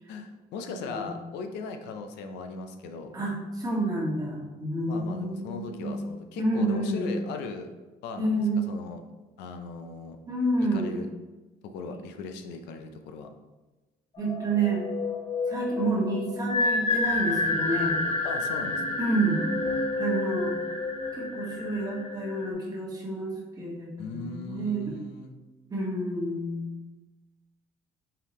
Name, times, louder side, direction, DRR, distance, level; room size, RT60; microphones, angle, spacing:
voice 1, 0.1-3.1 4.9-7.7 8.0-9.0 9.4-10.2 10.7-11.1 11.6-13.3 18.2-19.0 24.0-25.3, left 4 dB, 90° left, 6 dB, 0.5 m, -38 dB
voice 2, 0.8-1.1 3.1-5.9 6.4-7.1 8.2-8.6 10.3-10.9 11.9-12.0 14.2-14.9 15.5-18.0 19.0-19.4 20.0-20.5 21.1-25.0 25.7-26.7, right 2 dB, 20° right, -4 dB, 1.3 m, -29 dB
sound 1, 14.2-22.5, left 2 dB, 40° left, 0.8 m, -29 dB
4.6 x 3.5 x 3.0 m, 1.2 s
cardioid pair, 110°, 17 cm